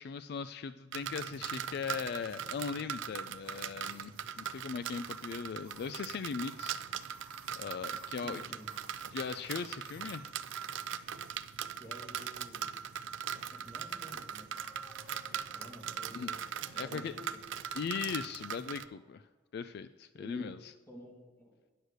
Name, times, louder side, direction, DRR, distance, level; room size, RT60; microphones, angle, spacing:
voice 1, 0.0-6.8 7.6-8.4 9.1-10.2 16.1-16.3 16.7-17.1 17.7-19.3 19.5-20.7, left 6 dB, 55° left, 13 dB, 0.3 m, -39 dB
sound 1, 0.9-18.8, right 8 dB, 80° right, 0.4 m, -40 dB
sound 2, 3.4-11.3, right 4 dB, 25° right, 2.0 m, -59 dB
voice 2, 8.2-8.7 11.8-12.7 13.3-14.5 15.3-17.4 20.1-20.5 20.9-21.6, equal, 15° left, -1 dB, 2.2 m, -51 dB
sound 3, 14.5-19.3, left 2 dB, 10° right, 1.4 m, -63 dB
9.8 x 6.3 x 6.5 m, 1.2 s
head